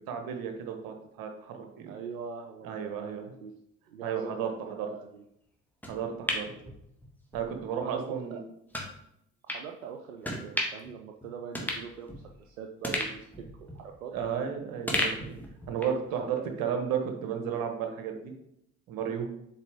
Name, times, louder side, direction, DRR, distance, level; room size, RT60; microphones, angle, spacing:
voice 1, 0.1-1.9 2.6-3.3 4.0-4.5 4.8-4.9 5.9-6.5 7.3-8.4 14.1-15.4 15.7-18.3 18.9-19.2, right 7 dB, 60° right, 5 dB, 1.3 m, -33 dB
voice 2, 1.9-3.5 3.9-5.2 6.5-6.8 7.8-8.4 9.4-13.3 13.6-14.1 16.1-16.7, right 6 dB, 85° right, 3 dB, 0.5 m, -43 dB
sound 1, 5.8-7.4 7.8-7.9 8.7-8.9 9.5-9.6 10.2-10.9 11.2-11.3 11.5-12.4 12.8-14.4 14.9-16.0 16.4-16.5, left 1 dB, 5° left, 1.6 m, -34 dB
7.3 x 4.2 x 3.5 m, 0.79 s
figure-of-eight pair, 50°, 39 cm